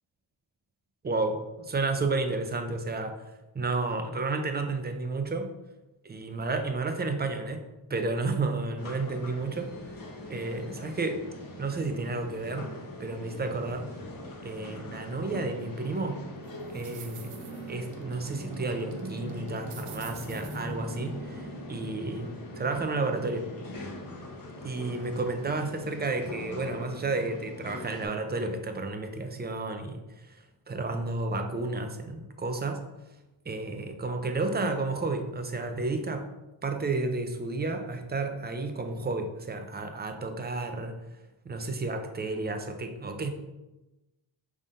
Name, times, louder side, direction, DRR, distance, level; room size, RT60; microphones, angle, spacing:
voice 1, 1.0-3.2 3.5-5.5 6.0-7.6 7.9-9.7 10.3-11.2 11.6-12.7 13.0-13.9 14.4-16.2 16.7-17.3 17.7-23.5 24.6-32.8 33.5-36.3 36.6-40.9 41.4-43.3, right 3 dB, 20° right, 6 dB, 0.4 m, -31 dB
sound 1, 8.8-28.1, left 1 dB, 40° left, 0.9 m, -42 dB
sound 2, 16.4-22.2, right 5 dB, 90° right, 0.7 m, -45 dB
5.4 x 3.6 x 2.5 m, 1.0 s
cardioid pair, 85°, 50 cm